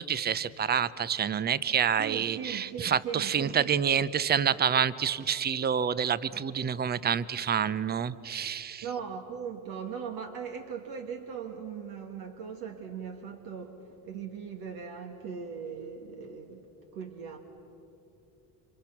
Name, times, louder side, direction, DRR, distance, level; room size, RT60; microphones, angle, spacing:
voice 1, 0.0-8.8, right 8 dB, 25° right, 17 dB, 0.7 m, -28 dB
voice 2, 2.0-3.8 8.8-17.4, right 6 dB, 60° right, 3 dB, 2.1 m, -39 dB
29.5 x 26.0 x 6.0 m, 2.9 s
supercardioid pair, 90°, 39 cm